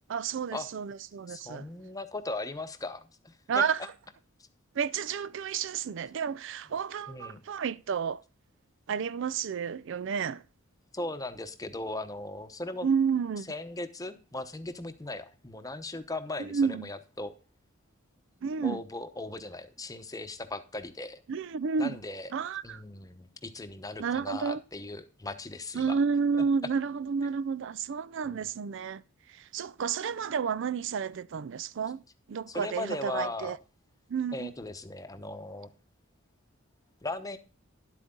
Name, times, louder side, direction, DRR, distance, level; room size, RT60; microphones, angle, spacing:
voice 1, 0.1-1.7 3.5-3.8 4.8-8.2 8.9-10.4 12.8-13.5 16.4-16.9 18.4-18.8 21.3-22.0 22.3-22.8 24.0-24.6 25.7-29.0 29.3-32.0 32.3-33.6 34.1-34.5, right 6 dB, 65° right, 0.4 m, -31 dB
voice 2, 1.3-3.7 7.1-7.4 10.9-12.9 13.5-17.3 18.6-21.2 21.8-22.3 22.6-26.0 28.2-28.5 32.5-33.6 34.3-35.7 37.0-37.4, left 2 dB, 15° left, 0.9 m, -38 dB
11.0 x 8.2 x 3.8 m
head